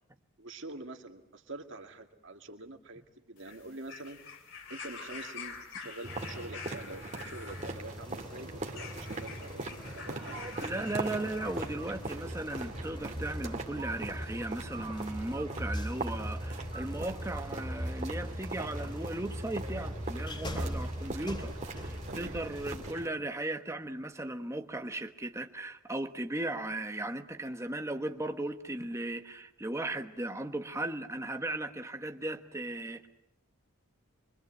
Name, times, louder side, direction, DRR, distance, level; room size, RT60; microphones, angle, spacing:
voice 1, 0.4-4.2 4.7-10.7 20.4-20.7 22.1-22.3, right 2 dB, 60° right, 4 dB, 2.3 m, -46 dB
sound 1, 3.4-12.0 12.9-13.0, left 5 dB, 60° left, 3.5 m, -47 dB
sound 2, 6.0-23.1, right 2 dB, 35° right, 2.2 m, -41 dB
sound 3, 7.5-22.9, equal, 20° left, 3.2 m, -41 dB
voice 2, 10.6-33.1, right 1 dB, 15° right, 6 dB, 1.2 m, -37 dB
24.5 x 24.5 x 7.7 m, 0.79 s
head